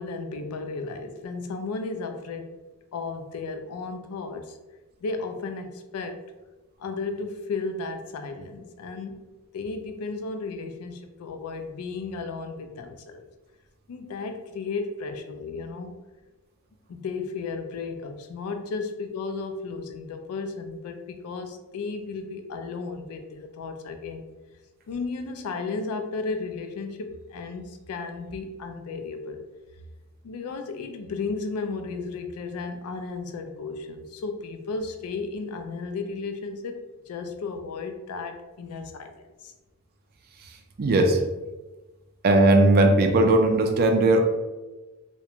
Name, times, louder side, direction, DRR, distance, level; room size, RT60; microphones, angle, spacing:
voice 1, 0.0-2.5 2.9-4.6 5.0-6.2 6.8-13.2 13.9-15.9 16.9-24.3 24.9-29.4 30.2-36.8 37.1-39.5, left 4 dB, 85° left, 7 dB, 0.4 m, -34 dB
voice 2, 40.8-41.2 42.2-44.2, right 2 dB, 45° right, 4 dB, 0.4 m, -18 dB
2.4 x 2.1 x 2.8 m, 1.1 s
head